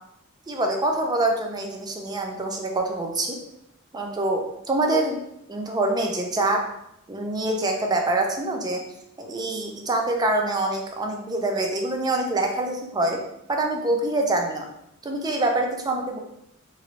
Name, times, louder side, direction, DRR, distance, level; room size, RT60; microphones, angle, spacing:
voice 1, 0.5-3.4 3.9-5.2 5.5-6.7 7.1-8.8 9.2-13.2 13.5-14.7 15.0-16.2, right 2 dB, 20° right, 2 dB, 0.4 m, -25 dB
3.0 x 2.5 x 2.7 m, 0.80 s
head